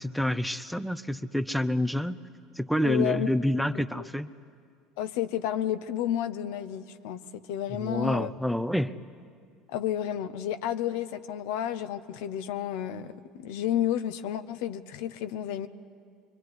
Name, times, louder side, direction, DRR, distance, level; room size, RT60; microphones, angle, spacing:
voice 1, 0.0-2.2 2.6-4.3 7.7-9.0, left 1 dB, ahead, 11 dB, 0.9 m, -28 dB
voice 2, 2.8-3.3 4.0-4.1 5.0-8.3 9.7-15.7, left 11 dB, 70° left, 10 dB, 0.9 m, -31 dB
25.5 x 23.0 x 9.7 m, 2.2 s
hypercardioid pair, 75°, 0 cm